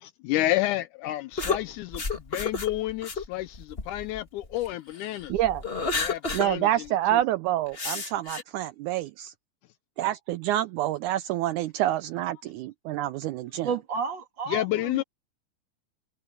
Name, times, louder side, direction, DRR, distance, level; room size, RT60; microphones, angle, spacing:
voice 1, 0.0-2.0 2.3-5.3 6.0-6.9 7.1-7.2 14.5-15.0, left 15 dB, 80° left, 1.9 m, -30 dB
sound 1, 1.4-4.7 5.1-6.5 6.8-6.9 7.7-8.4, left 4 dB, 25° left, 1.3 m, -31 dB
voice 2, 5.3-5.6 6.3-9.3 10.0-13.7, right 13 dB, 80° right, 1.8 m, -27 dB
voice 3, 13.6-15.0, right 6 dB, 40° right, 2.1 m, -32 dB
omnidirectional pair, 3.9 m